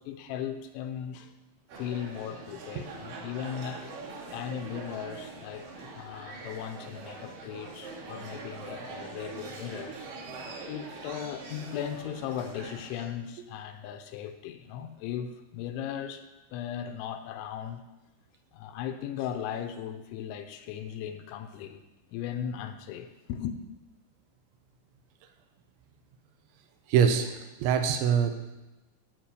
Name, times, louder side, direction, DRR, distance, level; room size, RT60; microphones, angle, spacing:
voice 1, 0.0-1.3 1.8-3.9 4.3-10.1 10.6-17.8 18.5-21.8 22.1-23.6, left 9 dB, 85° left, 3.0 m, -37 dB
sound 1, 1.7-13.1, right 3 dB, 50° right, 3.6 m, -43 dB
voice 2, 26.9-28.3, right 7 dB, 85° right, 3.0 m, -24 dB
14.5 x 5.9 x 6.6 m
omnidirectional pair, 5.5 m